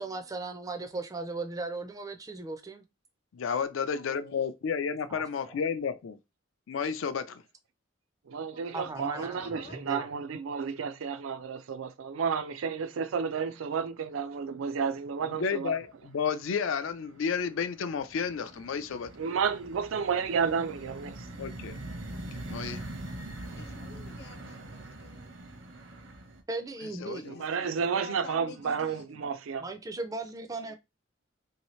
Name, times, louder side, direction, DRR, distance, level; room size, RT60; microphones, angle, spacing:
voice 1, 0.0-2.8 5.1-5.2 8.7-10.1 26.5-27.2 29.6-30.7, right 3 dB, 20° right, 0.3 m, -37 dB
voice 2, 3.3-6.2 6.7-7.4 15.2-19.1 21.4-21.7 22.1-22.8 27.0-27.7, left 6 dB, 80° left, 0.4 m, -32 dB
voice 3, 3.9-4.5 8.5-9.8 23.5-25.4 27.0-29.2, left 3 dB, 55° left, 0.8 m, -49 dB
voice 4, 8.3-15.7 19.2-21.3 27.2-29.6, right 6 dB, 90° right, 0.4 m, -31 dB
sound 1, 13.5-13.9 14.2-14.9 15.3-26.4, right 1 dB, 70° right, 0.8 m, -43 dB
3.1 x 2.8 x 3.0 m
head